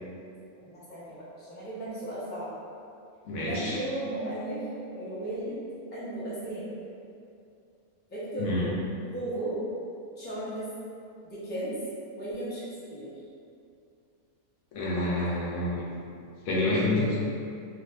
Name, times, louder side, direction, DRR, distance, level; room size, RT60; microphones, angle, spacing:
voice 1, 0.6-2.5 3.4-4.6 4.9-5.6 5.9-6.7 8.1-8.7 9.1-9.6 10.2-10.7 11.3-11.7 12.2-12.6 12.9-13.1, right 1 dB, 10° left, -11 dB, 0.6 m, -35 dB
voice 2, 3.2-3.8 8.4-8.7 14.7-15.8 16.5-17.2, left 1 dB, 75° left, -6 dB, 1.1 m, -28 dB
2.6 x 2.5 x 3.2 m, 2.5 s
omnidirectional pair, 1.5 m